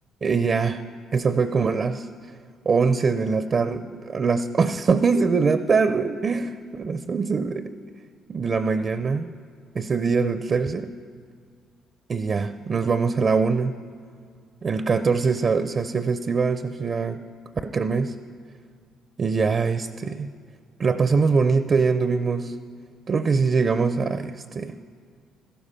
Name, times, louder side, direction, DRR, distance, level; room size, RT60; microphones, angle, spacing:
voice 1, 0.2-0.8 1.1-2.1 2.7-7.8 8.3-9.3 9.7-11.0 12.1-13.8 14.6-17.2 17.6-18.2 19.2-20.3 20.8-22.6 23.1-24.8, right 5 dB, 40° right, 11 dB, 0.5 m, -23 dB
13.0 x 12.5 x 5.6 m, 2.1 s
supercardioid pair, 75°, 0 cm